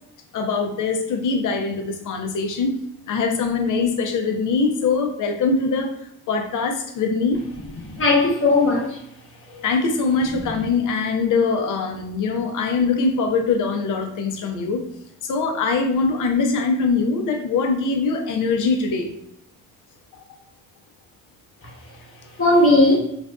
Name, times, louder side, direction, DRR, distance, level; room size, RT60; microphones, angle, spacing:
voice 1, 0.3-2.7 3.1-5.9 6.3-7.4 9.6-14.8 15.2-19.1 20.2-20.3, left 4 dB, 60° left, 4 dB, 0.6 m, -22 dB
voice 2, 7.9-9.0 9.5-9.6 22.4-23.0, left 2 dB, 35° left, -2 dB, 1.0 m, -17 dB
2.5 x 2.3 x 2.3 m, 0.73 s
supercardioid pair, 55°, 35 cm